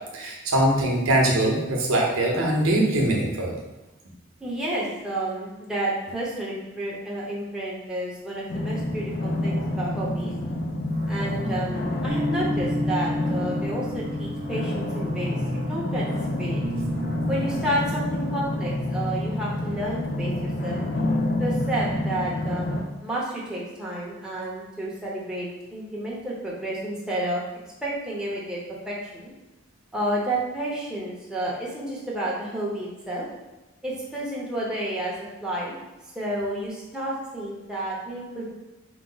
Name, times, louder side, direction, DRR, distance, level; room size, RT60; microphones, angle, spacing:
voice 1, 0.1-3.6, right 1 dB, 85° right, -1 dB, 0.9 m, -22 dB
voice 2, 4.4-10.3 11.1-15.4 15.7-16.1 16.4-16.6 17.3-20.8 21.4-27.4 27.8-28.6 28.9-29.3 29.9-33.2 33.8-35.1 35.4-35.7 36.1-38.5, right 1 dB, 5° right, -6 dB, 0.7 m, -30 dB
sound 1, 8.5-22.8, left 1 dB, 55° left, 0.5 m, -28 dB
sound 2, 10.9-17.7, equal, 40° right, 0.5 m, -33 dB
4.7 x 2.1 x 3.9 m, 1.1 s
head